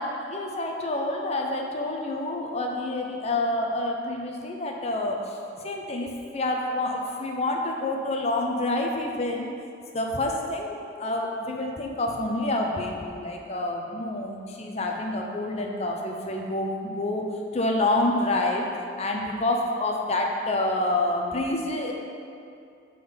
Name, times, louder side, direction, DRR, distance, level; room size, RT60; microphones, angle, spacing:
voice 1, 0.0-5.4 5.6-9.5 9.9-18.7 19.0-21.9, left 2 dB, 35° left, 1 dB, 0.6 m, -28 dB
7.0 x 3.9 x 5.1 m, 2.5 s
head